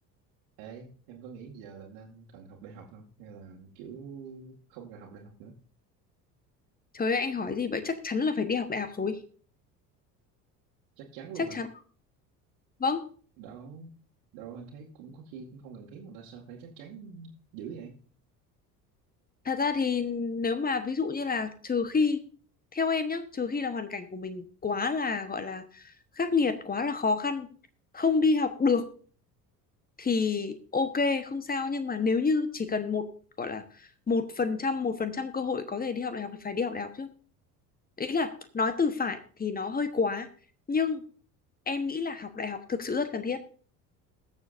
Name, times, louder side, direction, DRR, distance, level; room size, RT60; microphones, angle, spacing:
voice 1, 0.6-5.5 11.0-11.6 13.4-14.0 14.3-18.0, right 6 dB, 60° right, -4 dB, 2.0 m, -45 dB
voice 2, 6.9-9.2 11.4-11.7 12.8-13.0 19.4-22.2 22.7-27.5 27.9-28.9 30.0-33.1 33.4-37.1 38.0-40.3 40.7-41.0 41.7-43.4, left 4 dB, 20° left, 11 dB, 1.2 m, -29 dB
21.0 x 7.1 x 2.6 m, 0.43 s
figure-of-eight pair, 60°, 47 cm